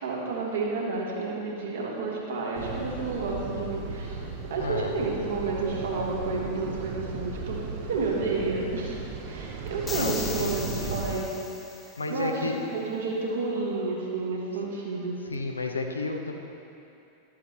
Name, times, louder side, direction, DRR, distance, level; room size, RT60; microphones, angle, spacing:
voice 1, 0.0-7.6 7.9-8.9 9.2-11.4 11.8-15.2, right 3 dB, 65° right, -3 dB, 1.7 m, -31 dB
sound 1, 2.5-11.2, right 4 dB, 45° right, 0.8 m, -36 dB
voice 2, 4.6-4.9 9.9-11.0 12.0-12.6 15.3-16.4, left 3 dB, 75° left, 3 dB, 0.7 m, -32 dB
sound 2, 9.9-12.2, left 4 dB, 15° left, 0.6 m, -38 dB
12.0 x 7.4 x 3.0 m, 2.7 s
figure-of-eight pair, 90°, 0 cm